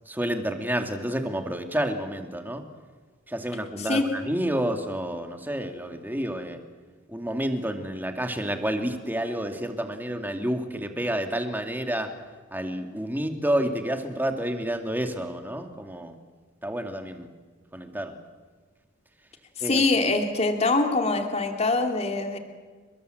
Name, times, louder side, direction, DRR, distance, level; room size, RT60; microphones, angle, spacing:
voice 1, 0.1-2.6 3.3-6.6 7.1-12.1 12.5-16.1 16.6-17.3 17.7-18.2 19.6-19.8, right 1 dB, 10° right, 4 dB, 2.4 m, -29 dB
voice 2, 19.6-22.4, left 3 dB, 35° left, 4 dB, 2.7 m, -24 dB
30.0 x 21.5 x 7.8 m, 1.4 s
head